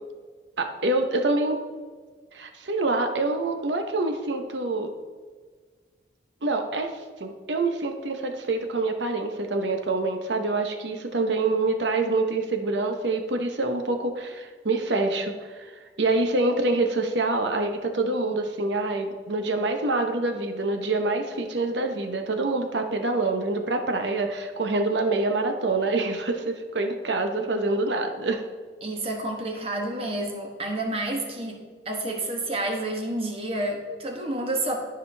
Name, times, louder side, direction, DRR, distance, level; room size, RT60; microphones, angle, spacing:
voice 1, 0.6-1.6 2.3-4.9 6.4-6.9 7.2-15.7 16.0-28.4, right 2 dB, 80° right, 5 dB, 0.9 m, -26 dB
voice 2, 28.8-31.6 31.8-34.9, right 1 dB, 30° right, 2 dB, 1.2 m, -29 dB
12.5 x 5.1 x 3.4 m, 1.5 s
head